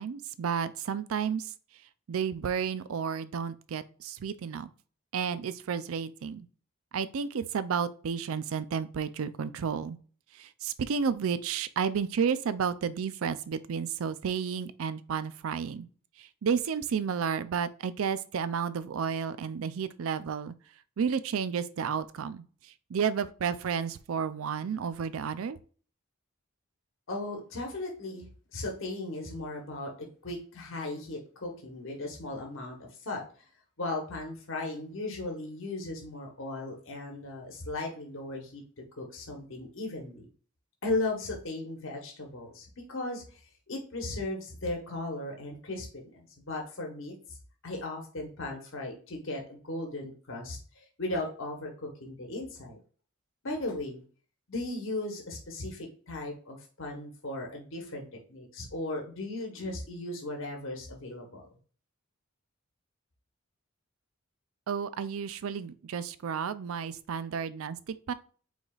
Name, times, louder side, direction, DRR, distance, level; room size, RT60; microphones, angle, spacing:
voice 1, 0.0-1.5 2.1-4.7 5.1-6.5 6.9-10.0 10.3-15.9 16.2-20.5 21.0-22.4 22.9-25.6 64.7-68.1, right 6 dB, 70° right, 0.4 m, -32 dB
voice 2, 27.1-29.9 30.2-32.8 33.0-33.2 33.8-38.6 39.0-40.3 40.8-47.1 47.6-52.8 53.4-54.0 54.5-61.4, left 2 dB, 65° left, 1.1 m, -37 dB
4.8 x 4.0 x 2.4 m
head